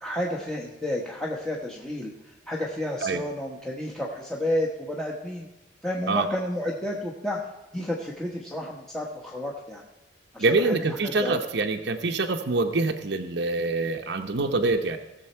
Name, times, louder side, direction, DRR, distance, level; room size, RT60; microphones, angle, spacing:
voice 1, 0.0-5.5 5.8-7.4 7.7-9.8 10.3-10.8 11.2-11.4, left 1 dB, 5° left, -3 dB, 1.1 m, -31 dB
voice 2, 10.4-15.0, right 3 dB, 60° right, 4 dB, 0.8 m, -25 dB
18.0 x 7.0 x 4.4 m, 1.0 s
head